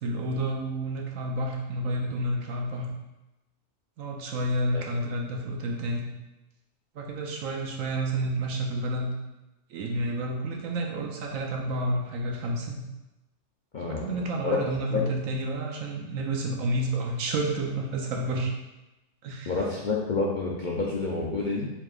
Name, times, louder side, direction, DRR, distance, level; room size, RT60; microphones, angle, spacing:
voice 1, 0.0-2.9 4.0-6.1 6.9-9.1 9.7-12.8 13.9-18.5 19.2-19.6, right 1 dB, 85° right, 0 dB, 1.1 m, -30 dB
voice 2, 13.7-14.6 14.9-15.1 19.5-21.7, left 4 dB, 60° left, -4 dB, 0.5 m, -29 dB
4.7 x 3.5 x 2.4 m, 1.0 s
omnidirectional pair, 1.4 m